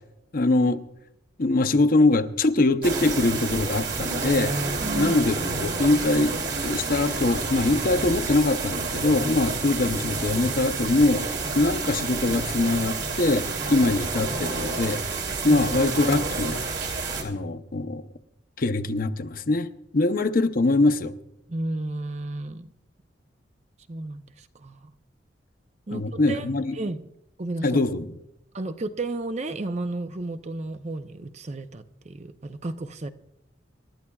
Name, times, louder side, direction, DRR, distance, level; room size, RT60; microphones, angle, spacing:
voice 1, 0.3-0.8 1.4-4.5 4.9-11.3 11.6-15.0 15.4-16.6 17.2-18.0 18.6-19.7 19.9-21.1 25.9-26.8 27.6-28.1, left 2 dB, 50° left, 0.7 m, -23 dB
sound 1, 2.8-17.2, right 4 dB, 65° right, 2.5 m, -29 dB
voice 2, 4.8-5.1 11.6-11.7 15.4-15.6 21.5-22.7 23.9-24.8 25.9-26.5 26.7-27.0 27.4-27.8 28.5-33.1, right 2 dB, 35° right, 0.6 m, -33 dB
27.5 x 12.0 x 2.3 m
head